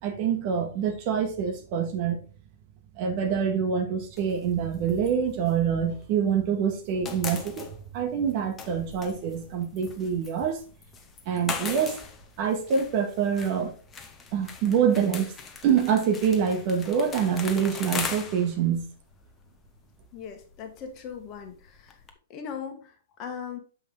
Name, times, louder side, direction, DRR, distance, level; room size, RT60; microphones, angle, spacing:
voice 1, 0.0-2.2 2.9-10.6 11.2-12.0 12.4-13.8 14.3-15.3 15.6-18.9, right 7 dB, 45° right, 1.7 m, -26 dB
sound 1, 4.2-6.4 6.7-22.1, left 5 dB, 20° left, 1.1 m, -40 dB
voice 2, 20.1-22.0 22.3-23.6, left 7 dB, 35° left, 1.6 m, -39 dB
7.1 x 5.4 x 3.8 m
figure-of-eight pair, 115°, 0 cm